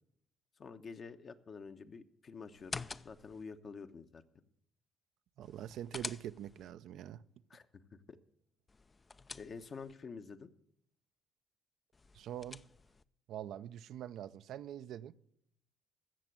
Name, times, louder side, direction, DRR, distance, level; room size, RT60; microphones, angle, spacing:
voice 1, 0.6-4.2 7.5-8.2 9.3-10.5, left 5 dB, 50° left, 1.0 m, -49 dB
sound 1, 2.5-3.4 5.4-6.7 8.7-9.9 11.9-13.0, left 4 dB, 30° left, 0.5 m, -47 dB
voice 2, 5.4-7.2 12.1-12.6 13.3-15.1, right 11 dB, 75° right, 0.5 m, -44 dB
15.0 x 6.8 x 7.6 m
supercardioid pair, 65°, 0 cm